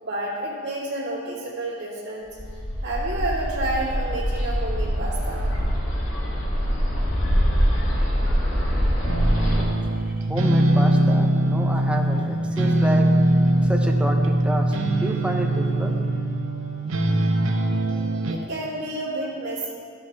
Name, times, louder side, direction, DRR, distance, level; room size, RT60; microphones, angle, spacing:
voice 1, 0.0-2.4 2.8-5.5 18.3-19.7, right 2 dB, 60° right, -10 dB, 2.3 m, -30 dB
Bird, 2.3-9.6, equal, 85° left, 2.2 m, -23 dB
sound 1, 9.1-18.4, right 1 dB, 85° right, 0.8 m, -21 dB
voice 2, 9.9-13.1 13.6-16.0, equal, 5° right, 2 dB, 0.7 m, -30 dB
13.0 x 5.6 x 4.6 m, 2.1 s
head